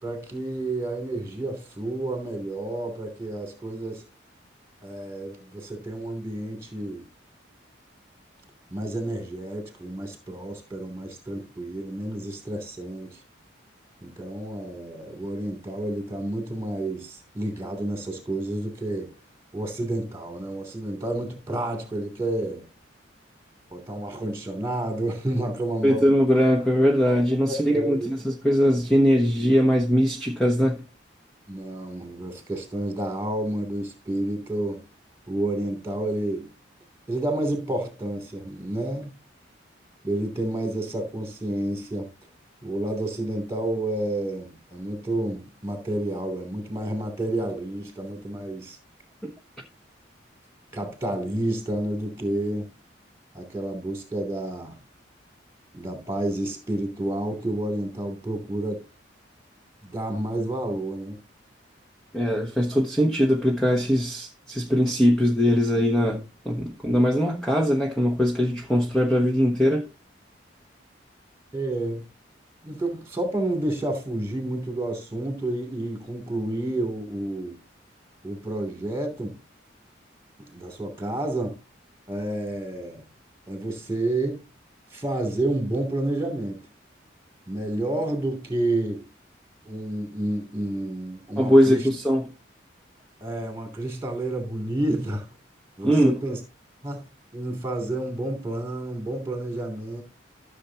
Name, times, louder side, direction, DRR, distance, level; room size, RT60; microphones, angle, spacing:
voice 1, 0.0-4.0 4.8-7.0 8.7-13.2 14.0-19.1 19.5-22.7 23.7-26.2 27.5-28.1 31.5-34.8 35.3-36.5 37.1-39.2 40.0-42.1 42.6-48.8 50.7-52.7 53.3-54.8 55.7-58.8 59.8-61.2 71.5-72.1 72.6-77.6 78.2-79.4 80.5-81.6 82.1-83.0 83.5-84.4 84.9-86.6 87.5-89.1 89.6-91.9 93.2-95.3 95.8-96.4 96.8-97.0 97.3-100.0, right 1 dB, 15° right, 2.9 m, -30 dB
voice 2, 25.8-30.8 49.2-49.3 62.1-69.9 91.4-92.3 95.8-96.1, equal, 5° left, 1.0 m, -21 dB
14.0 x 6.9 x 2.9 m
head